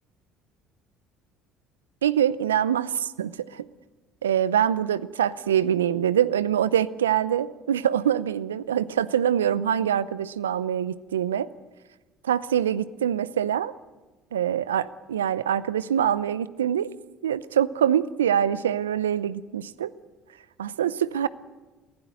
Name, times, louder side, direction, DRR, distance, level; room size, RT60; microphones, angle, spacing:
voice 1, 2.0-3.6 4.2-11.5 12.2-13.7 14.3-16.9 17.2-19.9 20.6-21.3, right 9 dB, 90° right, 17 dB, 0.6 m, -24 dB
22.5 x 16.0 x 9.1 m, 1.2 s
hypercardioid pair, 60°, 0 cm